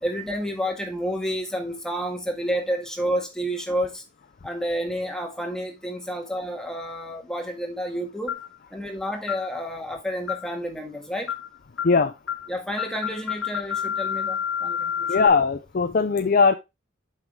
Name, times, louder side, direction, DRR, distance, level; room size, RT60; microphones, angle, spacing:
voice 1, 0.0-4.0 4.4-8.4 8.7-11.3 12.5-15.1, equal, 5° left, 1.7 m, -30 dB
sound 1, 8.3-8.6 9.3-9.5 10.3-10.6 11.3-11.5 11.8-12.0 12.3-12.5 12.8-15.3, left 8 dB, 80° left, 0.8 m, -29 dB
voice 2, 15.1-16.5, left 4 dB, 50° left, 0.5 m, -19 dB
7.9 x 5.8 x 3.3 m
head